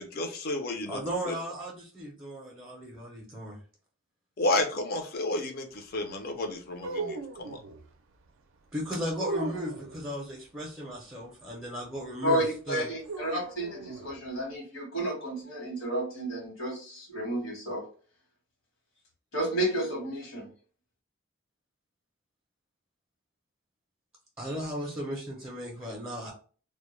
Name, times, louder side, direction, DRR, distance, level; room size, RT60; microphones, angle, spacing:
voice 1, 0.0-1.0 1.3-1.4 4.4-7.6, left 2 dB, 50° left, 4 dB, 0.5 m, -31 dB
voice 2, 0.9-3.6 8.7-12.9 24.4-26.3, equal, 10° right, -4 dB, 0.5 m, -36 dB
sound 1, 6.8-7.8 9.2-10.0 13.1-14.1, right 3 dB, 65° right, 0.4 m, -37 dB
voice 3, 12.2-17.8 19.3-20.5, right 1 dB, 70° left, -1 dB, 1.1 m, -31 dB
2.1 x 2.1 x 3.0 m, 0.40 s
head